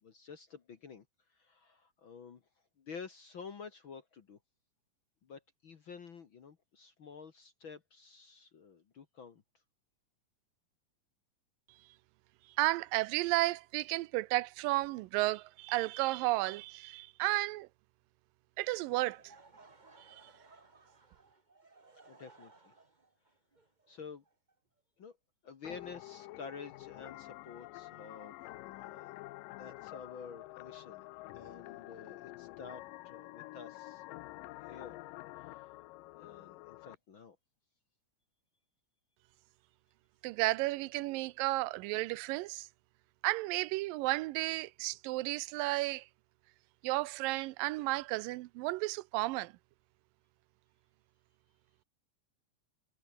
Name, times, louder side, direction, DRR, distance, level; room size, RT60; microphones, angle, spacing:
voice 1, 0.0-2.4 2.8-4.4 5.2-9.4 22.1-22.7 23.9-24.2 25.0-25.2 25.4-28.4 28.7-29.1 29.6-31.0 31.3-34.0 34.6-35.0 35.4-35.7 36.2-37.4, left 5 dB, 50° left, 1.7 m, -50 dB
voice 2, 12.6-17.7 18.6-19.2 40.2-42.7 43.2-46.1 46.8-49.5, right 20 dB, 85° right, 2.3 m, -33 dB
Laughter / Crowd, 18.9-24.8, right 3 dB, 35° right, 0.7 m, -61 dB
sound 1, 25.6-37.0, left 19 dB, 80° left, 2.3 m, -48 dB
omnidirectional pair, 4.0 m